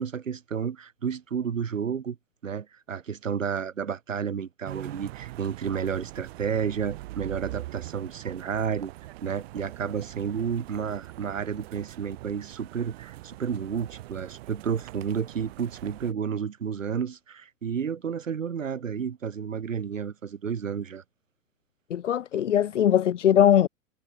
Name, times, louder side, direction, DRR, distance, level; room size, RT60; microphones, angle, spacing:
voice 1, 0.0-2.2 2.4-8.9 9.2-21.0, right 7 dB, 70° right, 4.6 m, -31 dB
sound 1, 4.6-16.1, right 18 dB, 50° right, 3.2 m, -43 dB
voice 2, 21.9-23.7, left 10 dB, 65° left, 1.2 m, -21 dB
figure-of-eight pair, 95°, 40 cm